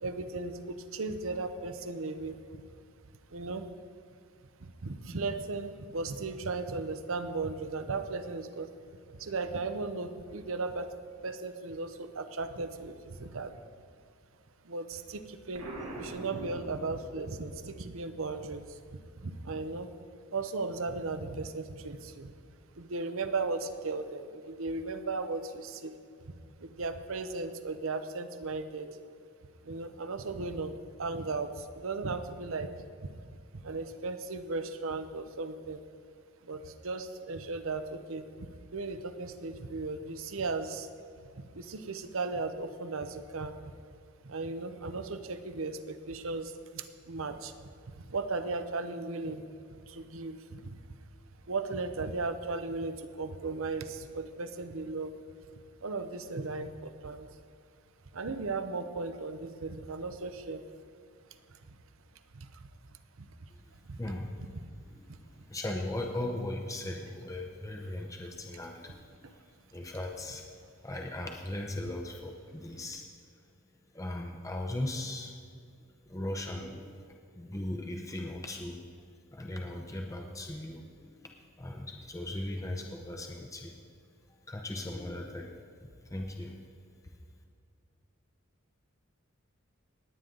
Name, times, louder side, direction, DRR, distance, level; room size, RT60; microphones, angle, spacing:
voice 1, 0.0-2.4 3.3-3.7 4.6-8.7 9.2-10.9 11.2-13.6 14.6-15.7 16.0-18.7 19.2-19.9 20.3-22.3 22.8-25.9 26.6-28.9 29.6-30.7 31.0-32.7 33.5-35.8 36.5-38.2 38.7-40.9 41.5-43.6 44.2-47.5 48.0-49.4 49.8-50.7 51.5-55.1 55.8-57.3 58.1-60.6 63.2-63.3 63.9-64.0, right 3 dB, 65° right, 10 dB, 0.8 m, -36 dB
Explosion, 15.5-17.4, right 1 dB, 85° right, 1.9 m, -42 dB
voice 2, 64.0-64.5 64.9-73.1 73.9-75.3 76.1-78.8 79.3-83.8 84.3-86.6 87.0-87.1, left 1 dB, 15° left, 1 dB, 0.8 m, -38 dB
18.5 x 9.3 x 3.9 m, 2.3 s
head